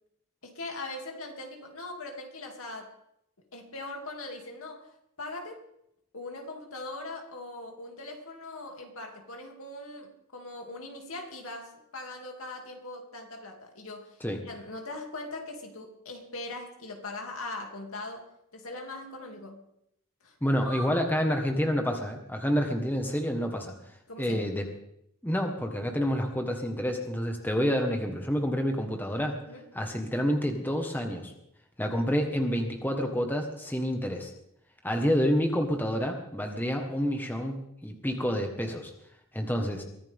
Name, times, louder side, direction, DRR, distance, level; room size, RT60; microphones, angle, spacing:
voice 1, 0.4-2.9 3.5-5.7 6.1-14.2 14.4-18.3 18.5-19.6 20.2-21.0 24.1-24.5 29.5-29.6, left 2 dB, 70° left, 2 dB, 2.7 m, -40 dB
voice 2, 20.4-24.7 25.2-29.4 29.7-31.3 31.8-34.3 34.8-38.9 39.3-39.8, equal, 10° left, 3 dB, 1.4 m, -28 dB
23.0 x 15.0 x 3.7 m, 0.77 s
head